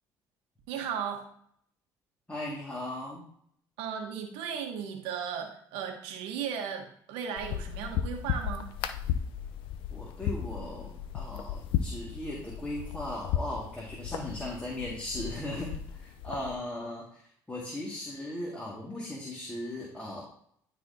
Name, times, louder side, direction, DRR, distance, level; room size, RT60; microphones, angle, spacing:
voice 1, 0.7-1.3 3.8-8.7, right 7 dB, 85° right, 3 dB, 1.2 m, -36 dB
voice 2, 2.3-3.2 9.9-17.2 17.5-20.2, left 1 dB, 15° left, -5 dB, 2.0 m, -38 dB
sound 1, 7.4-16.5, left 9 dB, 75° left, 0.6 m, -35 dB
12.0 x 4.1 x 2.8 m, 0.64 s
supercardioid pair, 80°, 9 cm